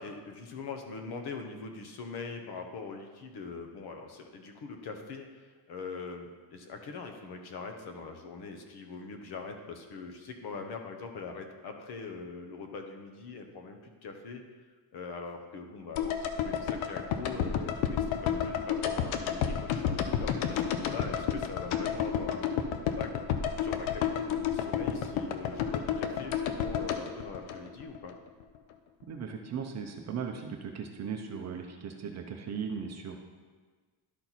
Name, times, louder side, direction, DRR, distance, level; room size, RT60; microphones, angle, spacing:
voice 1, 0.0-14.4 14.9-22.7 23.0-23.1 23.6-28.1, left 4 dB, 55° left, 5 dB, 0.9 m, -42 dB
sound 1, 16.0-28.2 28.4-28.5, left 8 dB, 80° left, 0.7 m, -31 dB
voice 2, 29.1-33.2, right 6 dB, 35° right, 3 dB, 0.6 m, -37 dB
11.5 x 4.4 x 4.1 m, 1.4 s
cardioid pair, 175°, 48 cm